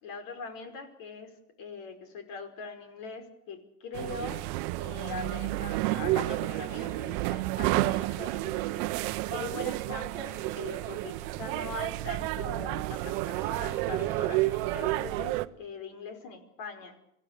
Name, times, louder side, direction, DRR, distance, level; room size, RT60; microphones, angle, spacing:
voice 1, 0.0-4.4 4.8-8.9 9.2-16.9, left 4 dB, 45° left, 8 dB, 5.2 m, -42 dB
sound 1, 3.9-15.5, right 18 dB, 50° right, 1.1 m, -31 dB
sound 2, 5.9-15.0, right 1 dB, 5° right, 4.1 m, -52 dB
25.5 x 16.5 x 8.7 m, 0.79 s
hypercardioid pair, 105°, 44 cm